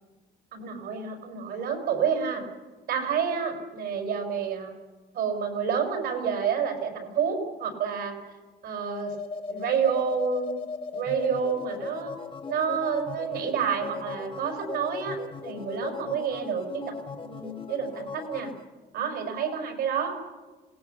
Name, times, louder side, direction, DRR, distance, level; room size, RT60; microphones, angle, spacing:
voice 1, 0.5-2.4 2.9-4.7 5.1-8.1 8.6-9.2 9.5-10.6 10.9-12.1 12.5-15.2 15.4-18.5 18.9-20.1, right 6 dB, 75° right, 4 dB, 5.7 m, -29 dB
sound 1, 8.8-18.6, left 4 dB, 30° left, 1.3 m, -38 dB
27.0 x 19.0 x 7.0 m, 1.3 s
cardioid pair, 110°, 17 cm